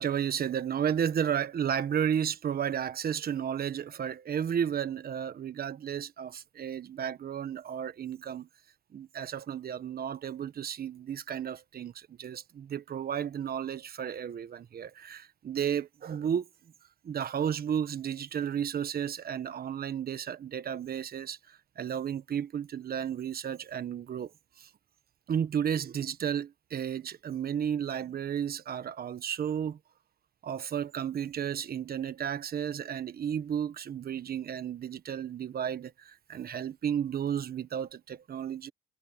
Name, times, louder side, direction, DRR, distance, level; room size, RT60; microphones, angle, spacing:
voice 1, 0.0-8.5 8.9-16.5 17.0-24.3 24.6-24.7 25.3-29.8 30.4-38.7, right 8 dB, 50° right, 1.4 m, -33 dB
cardioid pair, 85°, 20 cm